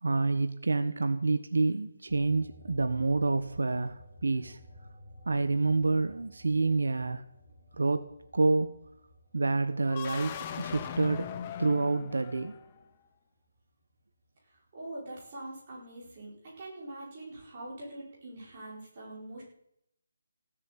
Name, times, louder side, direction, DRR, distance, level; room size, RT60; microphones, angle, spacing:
voice 1, 0.0-4.6 5.3-7.2 7.8-8.1 8.3-8.8 9.3-11.3 11.6-12.6, right 3 dB, 80° right, 10 dB, 1.2 m, -28 dB
sound 1, 2.1-13.0 13.4-14.8, equal, ahead, 1.9 m, -56 dB
sound 2, 9.8-12.8, left 8 dB, 15° left, 0.5 m, -39 dB
voice 2, 14.7-19.4, right 1 dB, 20° right, -5 dB, 4.8 m, -43 dB
16.0 x 7.6 x 8.2 m, 0.77 s
hypercardioid pair, 180°, 0 cm